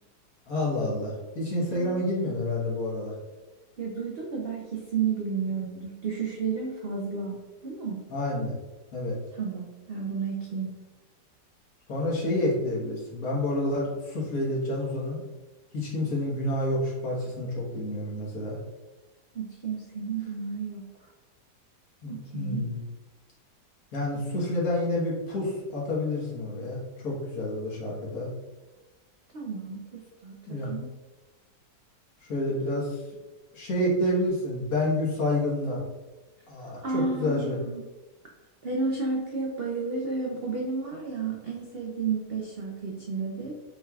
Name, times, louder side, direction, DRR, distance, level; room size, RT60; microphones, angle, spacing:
voice 1, 0.5-3.1 8.1-8.6 8.9-9.2 11.9-15.2 15.7-18.6 22.0-22.8 23.9-28.3 30.5-30.7 32.3-33.0 33.5-35.8 36.5-37.6, left 1 dB, 55° left, -5 dB, 1.6 m, -29 dB
voice 2, 1.7-2.0 3.8-7.4 7.6-8.0 9.3-10.7 19.3-20.8 22.1-22.7 29.3-30.9 36.8-37.8 38.6-43.6, right 4 dB, 85° right, -2 dB, 0.5 m, -32 dB
5.7 x 3.2 x 2.3 m, 1.2 s
omnidirectional pair, 1.8 m